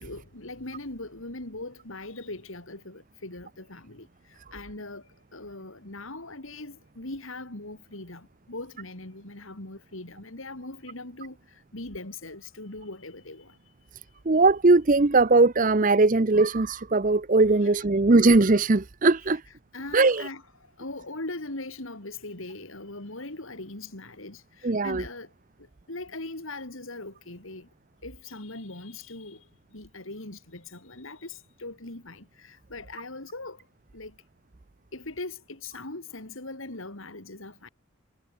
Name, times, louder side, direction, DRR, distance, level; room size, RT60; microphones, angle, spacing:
voice 1, 0.0-4.1 4.5-11.4 11.7-13.5 17.6-17.7 19.7-20.4 20.8-25.3 25.9-27.7 28.0-29.4 29.7-33.6 33.9-34.1 34.9-37.7, left 2 dB, 65° left, 2.9 m, -40 dB
voice 2, 14.3-19.4 19.9-20.3 24.6-25.0, right 3 dB, 35° right, 0.7 m, -20 dB
head